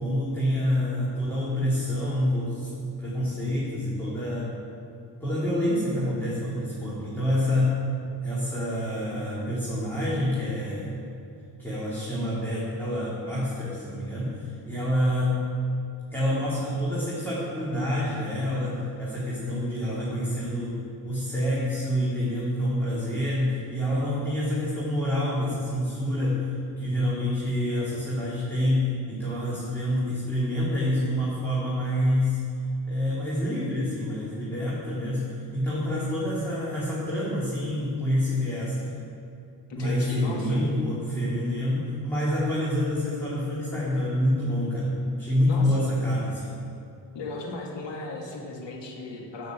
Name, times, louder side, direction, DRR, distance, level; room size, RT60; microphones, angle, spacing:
voice 1, 0.0-2.7 3.0-4.5 5.2-7.8 8.2-10.9 11.6-15.4 16.1-20.8 21.0-26.4 26.8-32.4 32.9-38.9 39.8-44.9 45.2-46.5, left 1 dB, 5° left, -9 dB, 3.3 m, -27 dB
voice 2, 39.7-40.6 45.5-45.9 47.1-49.5, left 2 dB, 90° left, -1 dB, 2.8 m, -36 dB
15.5 x 6.7 x 7.8 m, 2.7 s
cardioid pair, 120°, 42 cm